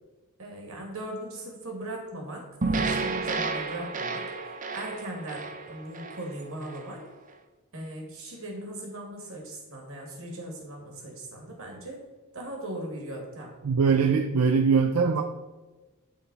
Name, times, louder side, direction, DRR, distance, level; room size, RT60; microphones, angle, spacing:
voice 1, 0.4-4.3 4.7-7.0 7.7-12.0 12.3-13.6, right 1 dB, 65° right, 0 dB, 2.1 m, -39 dB
sound 1, 2.6-6.9, right 3 dB, 35° right, 0.7 m, -31 dB
voice 2, 13.6-15.2, right 5 dB, 80° right, 6 dB, 0.5 m, -22 dB
12.0 x 4.1 x 4.1 m, 1.2 s
head